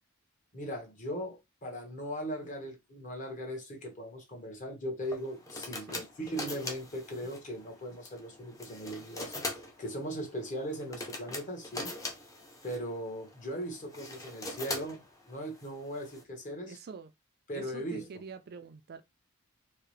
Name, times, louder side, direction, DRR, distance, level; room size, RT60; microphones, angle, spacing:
voice 1, 0.5-9.4 9.8-11.9 12.6-16.8 17.5-18.1, equal, 35° left, 1.2 m, -39 dB
sound 1, 5.0-16.2, left 2 dB, 15° left, 0.7 m, -42 dB
voice 2, 16.6-17.1 17.5-19.0, right 5 dB, 45° right, 0.4 m, -46 dB
4.6 x 2.1 x 3.1 m
head